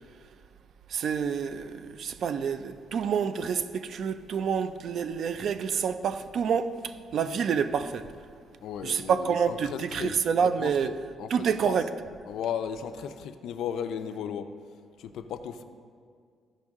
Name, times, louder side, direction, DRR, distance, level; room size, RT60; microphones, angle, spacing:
voice 1, 0.9-8.1 8.8-11.0 11.3-11.9, right 7 dB, 60° right, 0.4 m, -28 dB
voice 2, 8.6-11.8 12.3-14.5 15.0-15.6, left 8 dB, 80° left, 0.5 m, -36 dB
13.5 x 5.3 x 3.6 m
cardioid pair, 135°, 0 cm